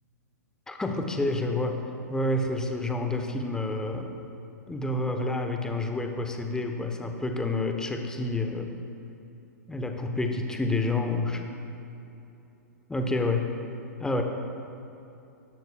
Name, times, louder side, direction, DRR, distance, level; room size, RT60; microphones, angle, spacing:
voice 1, 0.7-1.8 2.1-4.1 4.7-8.7 9.7-11.4 12.9-13.5 14.0-14.2, left 2 dB, 5° left, 4 dB, 0.8 m, -28 dB
14.5 x 12.0 x 2.2 m, 2.9 s
figure-of-eight pair, 105°, 9 cm